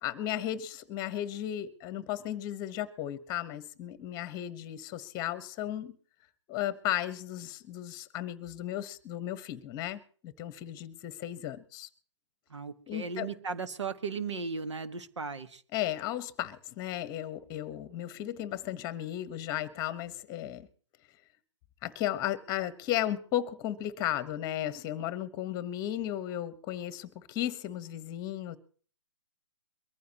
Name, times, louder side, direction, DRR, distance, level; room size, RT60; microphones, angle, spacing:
voice 1, 0.0-5.9 6.5-11.9 12.9-13.3 15.7-20.7 21.8-28.6, left 12 dB, 25° left, 1.1 m, -35 dB
voice 2, 12.5-15.6, right 5 dB, 75° right, 1.5 m, -36 dB
23.0 x 14.5 x 3.0 m
figure-of-eight pair, 135°, 15 cm